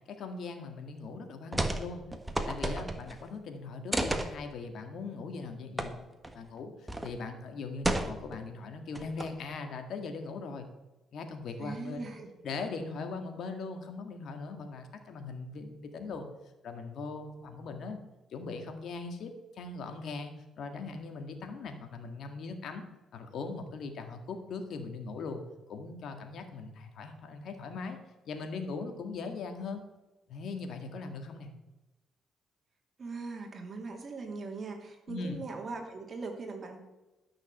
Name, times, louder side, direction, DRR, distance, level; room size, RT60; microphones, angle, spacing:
voice 1, 0.1-2.0 2.5-10.7 11.1-12.1 12.4-16.3 16.6-18.0 18.3-22.9 23.1-25.4 25.7-28.0 28.3-29.8 30.3-31.5 35.1-35.4, left 4 dB, 70° left, 6 dB, 1.9 m, -40 dB
sound 1, 1.5-1.9 2.1-3.2 3.9-4.3 5.8-5.9 6.2-6.3 6.9-7.1 7.8-8.4 8.9-9.5, right 1 dB, 10° right, 1.4 m, -32 dB
voice 2, 11.6-12.3 33.0-36.8, right 3 dB, 40° right, 3 dB, 2.6 m, -40 dB
12.5 x 6.5 x 7.2 m, 1.1 s
cardioid pair, 90°, 0 cm